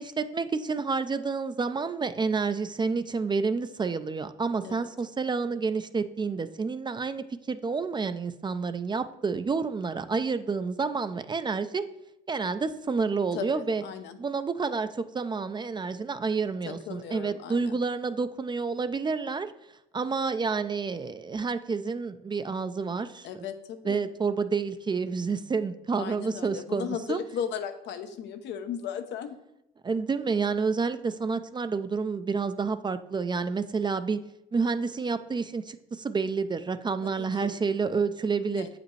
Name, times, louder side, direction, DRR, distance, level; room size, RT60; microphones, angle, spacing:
voice 1, 0.0-11.8 12.3-13.8 14.2-19.5 19.9-23.3 23.9-27.2 29.8-34.2 34.5-38.7, right 4 dB, 25° right, 11 dB, 0.4 m, -29 dB
voice 2, 13.3-14.2 16.7-17.8 23.2-24.0 25.9-29.4 37.0-37.6 38.5-38.7, left 8 dB, 75° left, 9 dB, 0.7 m, -36 dB
7.9 x 5.0 x 3.2 m, 0.85 s
supercardioid pair, 75°, 19 cm